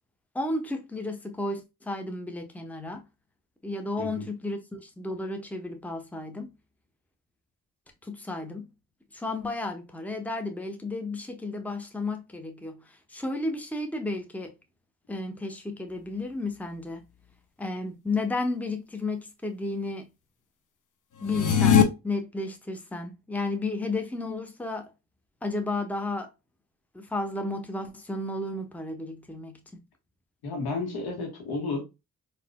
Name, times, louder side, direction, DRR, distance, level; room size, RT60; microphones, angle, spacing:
voice 1, 0.3-3.0 3.6-6.5 8.0-8.7 9.1-12.8 13.1-14.5 15.1-17.0 17.6-20.0 21.2-24.9 25.4-26.3 26.9-29.8, left 2 dB, 5° left, 0.8 m, -33 dB
sound 1, 21.2-21.8, left 8 dB, 55° left, 0.7 m, -19 dB
voice 2, 30.4-31.8, left 3 dB, 75° left, 1.4 m, -32 dB
3.9 x 2.8 x 2.2 m
supercardioid pair, 45°, 38 cm